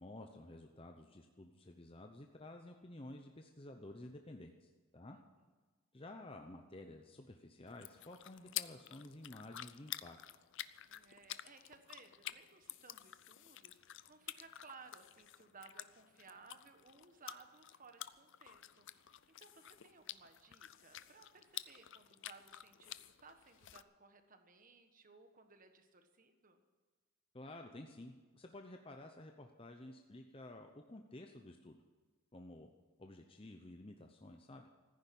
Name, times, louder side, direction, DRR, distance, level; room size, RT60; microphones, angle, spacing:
voice 1, 0.0-5.2 5.9-10.2 27.3-31.8 32.3-32.7 33.0-34.7, left 1 dB, 25° left, 4 dB, 0.8 m, -52 dB
sound 1, 7.7-23.8, left 13 dB, 55° left, 0.5 m, -50 dB
voice 2, 10.9-26.6, right 4 dB, 35° right, 7 dB, 1.3 m, -60 dB
15.0 x 10.0 x 8.5 m, 1.3 s
head